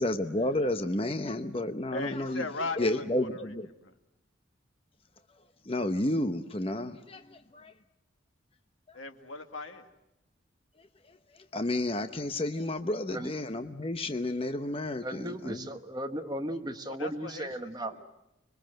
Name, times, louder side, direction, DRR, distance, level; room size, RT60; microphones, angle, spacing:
voice 1, 0.0-2.5 2.8-3.7 5.7-7.7 11.5-15.7, left 1 dB, 30° left, 8 dB, 0.9 m, -31 dB
voice 2, 1.9-3.3 3.8-3.9 8.9-9.9 16.9-18.0, left 2 dB, 85° left, 7 dB, 1.9 m, -38 dB
voice 3, 15.0-18.0, right 1 dB, 20° right, 7 dB, 1.2 m, -36 dB
25.5 x 22.5 x 7.7 m, 0.91 s
head